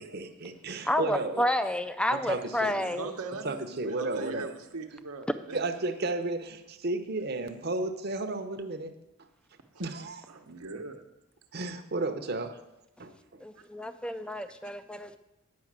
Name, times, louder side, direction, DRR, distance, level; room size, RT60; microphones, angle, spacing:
voice 1, 0.0-1.5 2.1-2.7 3.4-4.6 5.5-8.9 9.2-9.3 9.8-10.4 11.5-12.6 13.0-13.4, right 2 dB, 45° right, 8 dB, 0.8 m, -33 dB
voice 2, 0.9-3.1 13.4-15.2, left 1 dB, 5° left, 11 dB, 0.3 m, -30 dB
voice 3, 2.7-5.6 10.3-11.0 14.0-14.3 14.6-14.7, right 3 dB, 80° right, 5 dB, 1.0 m, -40 dB
9.5 x 5.7 x 7.4 m, 0.93 s
head